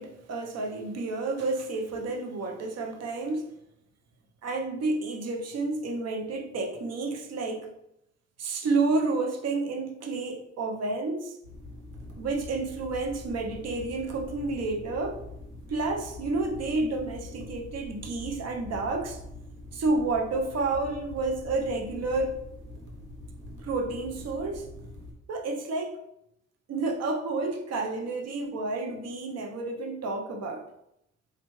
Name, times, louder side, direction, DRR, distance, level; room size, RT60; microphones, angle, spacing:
voice 1, 0.0-3.5 4.4-7.7 8.4-11.4 12.2-15.2 15.7-19.2 19.7-22.4 23.6-24.7 25.3-26.0 26.7-30.7, right 3 dB, 55° right, 3 dB, 0.7 m, -30 dB
sound 1, 11.4-25.1, left 1 dB, 90° right, 0.8 m, -44 dB
4.3 x 2.4 x 3.1 m, 0.80 s
cardioid pair, 90°, 30 cm